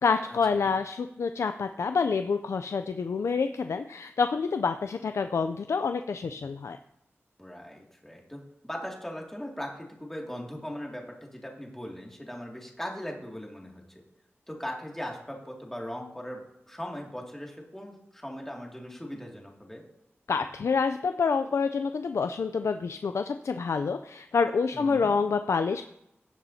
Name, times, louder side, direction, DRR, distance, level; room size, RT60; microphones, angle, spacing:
voice 1, 0.0-6.8 20.3-25.8, left 5 dB, 85° left, 8 dB, 0.4 m, -27 dB
voice 2, 7.4-13.8 14.5-19.8 24.7-25.1, equal, 5° left, -1 dB, 2.3 m, -39 dB
17.0 x 7.0 x 2.8 m, 0.83 s
wide cardioid pair, 90°, 5 cm